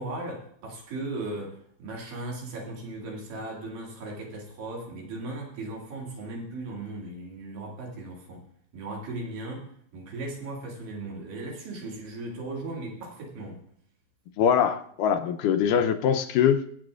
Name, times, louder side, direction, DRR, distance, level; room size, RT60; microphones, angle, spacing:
voice 1, 0.0-8.4 8.7-13.6, right 2 dB, 75° right, -1 dB, 3.9 m, -37 dB
voice 2, 14.4-16.6, left 8 dB, 80° left, 8 dB, 2.1 m, -23 dB
23.5 x 8.2 x 2.4 m, 0.65 s
omnidirectional pair, 3.9 m